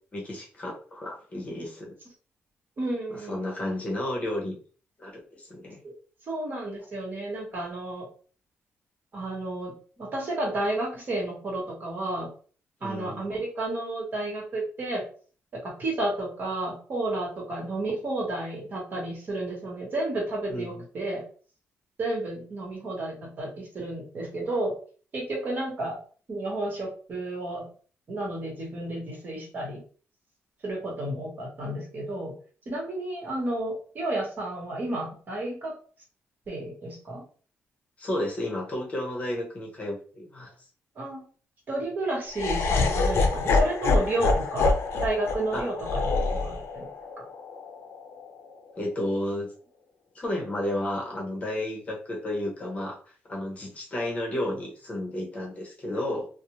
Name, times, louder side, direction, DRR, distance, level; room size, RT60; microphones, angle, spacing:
voice 1, 0.1-1.9 3.3-4.6 5.0-5.8 12.8-13.2 20.5-20.9 38.0-40.5 45.5-45.7 48.7-49.5 50.1-53.0 53.2-56.3, left 1 dB, 30° left, -2 dB, 0.8 m, -32 dB
voice 2, 2.8-3.4 6.3-8.1 9.1-12.3 12.8-15.0 15.6-21.2 22.0-24.7 25.1-26.0 26.3-27.6 28.1-29.8 30.6-32.3 32.7-35.7 36.5-37.2 40.9-41.2 41.7-44.7 45.0-46.8 47.2-47.3, right 2 dB, 40° right, -2 dB, 1.1 m, -31 dB
Laughter, 42.3-48.5, left 3 dB, 60° left, 0.5 m, -26 dB
2.5 x 2.0 x 3.0 m, 0.41 s
cardioid pair, 140°, 5 cm